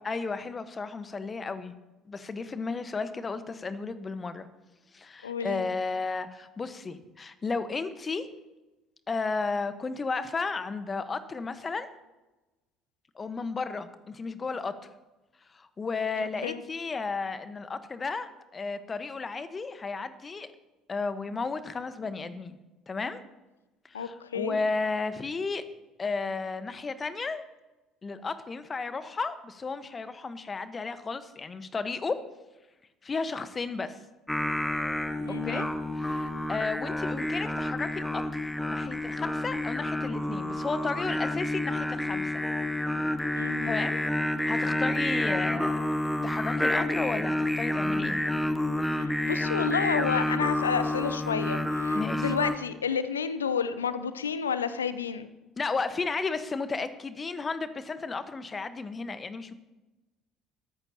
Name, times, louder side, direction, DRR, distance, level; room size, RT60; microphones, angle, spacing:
voice 1, 0.0-1.7 2.1-4.5 4.9-8.3 9.1-11.9 13.1-14.7 15.5-20.5 20.9-22.6 22.9-23.2 23.8-25.6 26.0-27.4 28.0-32.2 33.0-34.0 35.3-35.7 36.0-38.4 38.7-42.4 43.7-45.8 46.2-48.2 51.9-52.3 55.6-59.5, left 4 dB, 30° left, 12 dB, 1.2 m, -33 dB
voice 2, 5.2-5.6 16.4-16.6 23.9-24.6 35.2-35.7 43.3-43.7 49.0-55.3, left 6 dB, 80° left, 13 dB, 0.7 m, -30 dB
Singing, 34.3-52.6, left 1 dB, 5° left, 1.1 m, -29 dB
21.0 x 14.0 x 2.9 m, 1.1 s
figure-of-eight pair, 55°, 0 cm